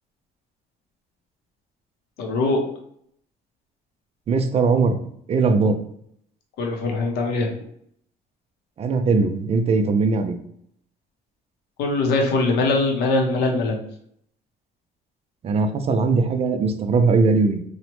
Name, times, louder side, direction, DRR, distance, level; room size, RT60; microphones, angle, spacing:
voice 1, 2.2-2.6 6.6-7.5 11.8-13.8, left 2 dB, 80° left, 2 dB, 0.6 m, -21 dB
voice 2, 4.3-4.9 5.3-5.8 8.8-10.4 15.4-17.6, right 4 dB, 35° right, 7 dB, 0.4 m, -20 dB
2.9 x 2.1 x 3.0 m, 0.69 s
cardioid pair, 110°, 17 cm